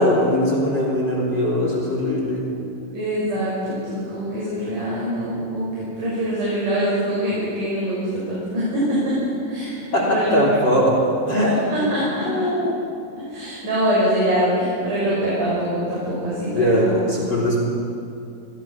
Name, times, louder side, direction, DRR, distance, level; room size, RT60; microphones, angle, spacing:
voice 1, 0.0-2.5 9.9-11.9 12.3-12.7 16.5-17.6, equal, 30° left, -2 dB, 3.5 m, -20 dB
voice 2, 2.9-10.4 11.7-12.4 13.3-17.0, equal, 55° right, -8 dB, 7.8 m, -24 dB
27.0 x 21.5 x 5.7 m, 2.6 s
omnidirectional pair, 4.5 m